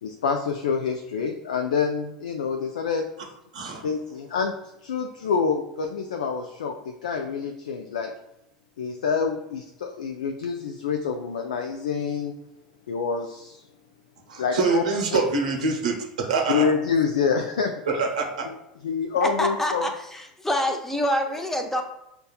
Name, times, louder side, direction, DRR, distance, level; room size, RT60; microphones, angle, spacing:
voice 1, 0.0-3.1 3.8-8.1 8.8-12.3 12.9-13.6 14.4-14.8 15.1-15.2 16.5-17.7 18.8-19.8, left 6 dB, 80° left, 4 dB, 0.3 m, -27 dB
voice 2, 3.5-3.9 14.3-16.7 17.8-18.5, right 4 dB, 80° right, 1 dB, 0.7 m, -25 dB
voice 3, 19.2-21.8, left 1 dB, 10° left, 4 dB, 0.6 m, -26 dB
5.3 x 2.2 x 2.2 m, 0.85 s
hypercardioid pair, 85°, 4 cm